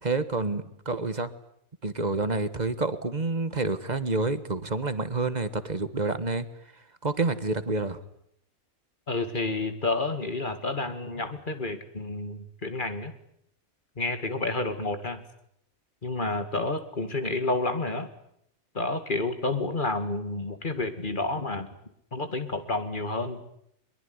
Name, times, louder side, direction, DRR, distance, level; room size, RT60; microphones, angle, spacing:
voice 1, 0.0-1.3 1.8-6.5 7.0-8.0, right 3 dB, 30° right, 13 dB, 1.4 m, -28 dB
voice 2, 9.1-13.1 14.0-15.2 16.0-18.1 18.7-21.7 22.1-23.4, left 2 dB, 35° left, 9 dB, 2.4 m, -30 dB
23.5 x 22.5 x 9.6 m, 0.73 s
omnidirectional pair, 1.5 m